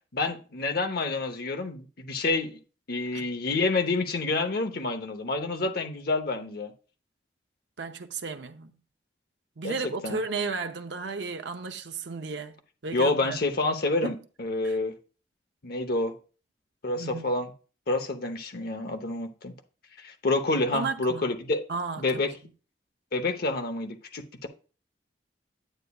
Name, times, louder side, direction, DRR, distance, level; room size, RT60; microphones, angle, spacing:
voice 1, 0.1-2.6 2.9-6.7 9.6-9.7 10.0-10.2 12.9-14.9 15.6-16.2 16.8-17.5 17.9-19.5 20.0-21.6 22.0-22.3 23.1-24.5, left 3 dB, 60° left, 0.9 m, -28 dB
voice 2, 7.8-8.8 9.6-12.6 12.8-13.4 14.0-14.2 14.6-14.8 17.0-17.4 20.7-21.3 21.7-22.3, right 4 dB, 75° right, 0.7 m, -34 dB
9.0 x 8.1 x 2.3 m
head